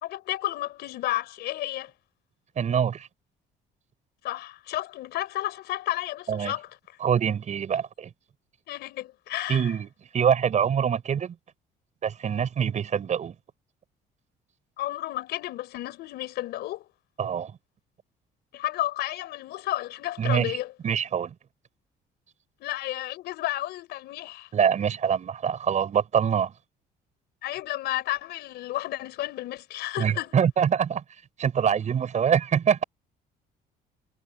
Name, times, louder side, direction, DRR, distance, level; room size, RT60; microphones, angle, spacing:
voice 1, 0.0-1.9 4.2-6.8 8.7-9.7 14.8-16.9 18.5-20.7 22.6-24.5 27.4-30.4, left 15 dB, 80° left, 4.5 m, -32 dB
voice 2, 2.6-3.1 6.3-6.5 7.0-8.1 9.5-9.9 10.1-11.4 12.0-13.4 17.2-17.5 20.2-20.5 20.8-21.3 24.5-26.5 30.0-31.0 31.4-32.8, right 8 dB, 45° right, 5.1 m, -24 dB
cardioid pair, 110°, 17 cm